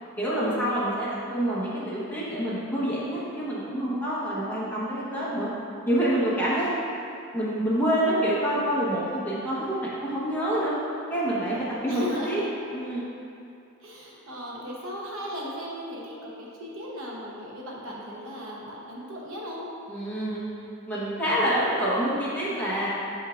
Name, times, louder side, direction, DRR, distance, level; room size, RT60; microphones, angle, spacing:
voice 1, 0.2-5.5 5.9-6.7 7.3-10.7 11.1-12.4 12.7-13.1 19.9-20.4 20.9-22.9, right 1 dB, 10° left, -9 dB, 1.1 m, -27 dB
voice 2, 1.3-2.2 4.6-5.6 11.9-12.5 13.8-19.7, equal, 70° right, -3 dB, 0.9 m, -37 dB
7.2 x 5.3 x 2.5 m, 2.6 s
head